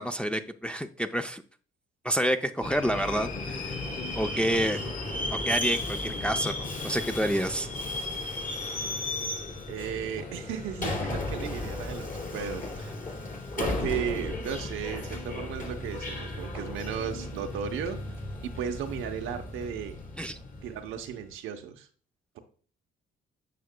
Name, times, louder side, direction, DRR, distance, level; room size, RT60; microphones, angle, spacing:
voice 1, 0.0-1.4 2.0-3.8 4.1-4.8 5.3-7.7 20.2-20.4, equal, 5° left, 5 dB, 0.5 m, -29 dB
Subway metro underground, 2.6-21.1, left 2 dB, 40° left, 2.9 m, -35 dB
voice 2, 9.7-12.9 13.6-18.0 18.4-20.0 20.6-21.9, right 8 dB, 90° right, 5 dB, 0.8 m, -35 dB
9.3 x 5.9 x 2.2 m, 0.42 s
cardioid pair, 90°, 20 cm